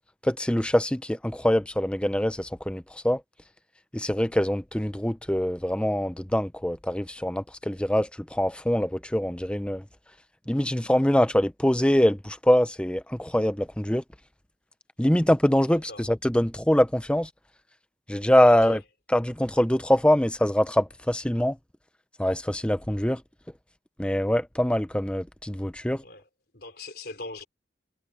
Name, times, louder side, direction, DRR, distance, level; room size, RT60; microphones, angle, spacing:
voice 1, 0.2-3.2 3.9-9.8 10.5-14.0 15.0-17.3 18.1-18.8 19.1-21.6 22.2-23.2 24.0-26.0, equal, 5° left, 0.7 m, -24 dB
voice 2, 15.7-16.1 18.7-18.8 26.0-26.3 26.5-27.5, left 2 dB, 60° left, 4.2 m, -41 dB
head